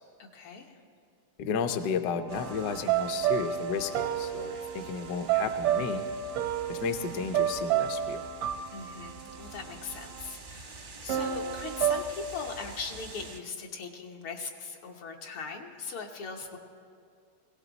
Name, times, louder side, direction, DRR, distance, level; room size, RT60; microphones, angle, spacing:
voice 1, 0.2-0.8 8.7-16.6, left 4 dB, 80° left, 2 dB, 2.1 m, -40 dB
voice 2, 1.4-6.1 6.7-8.3, left 6 dB, 65° left, 7 dB, 1.1 m, -33 dB
sound 1, 2.3-13.4, right 3 dB, 55° right, 0.5 m, -48 dB
sound 2, 2.3-10.3 11.1-12.0, right 9 dB, 90° right, 1.7 m, -31 dB
21.0 x 17.0 x 4.0 m, 2.3 s
omnidirectional pair, 2.3 m